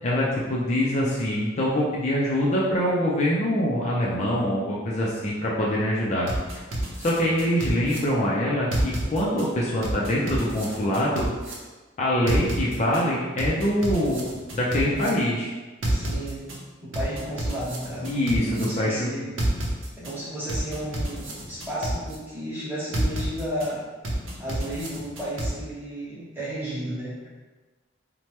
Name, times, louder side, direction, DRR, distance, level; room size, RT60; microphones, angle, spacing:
voice 1, 0.0-6.3 7.0-11.2 12.0-15.5 18.0-19.1, equal, 35° left, -5 dB, 0.4 m, -24 dB
sound 1, 6.3-8.0 8.7-9.5 9.8-11.5 12.3-13.0 13.4-15.1 15.8-16.6 16.9-18.7 19.4-20.1 20.5-22.2 22.9-23.7 24.0-25.5, right 1 dB, 80° right, 0.6 m, -29 dB
voice 2, 14.8-15.3 15.9-16.5 16.8-19.3 20.0-23.8 24.4-27.3, equal, 10° right, -9 dB, 1.0 m, -33 dB
3.1 x 2.1 x 2.9 m, 1.3 s
head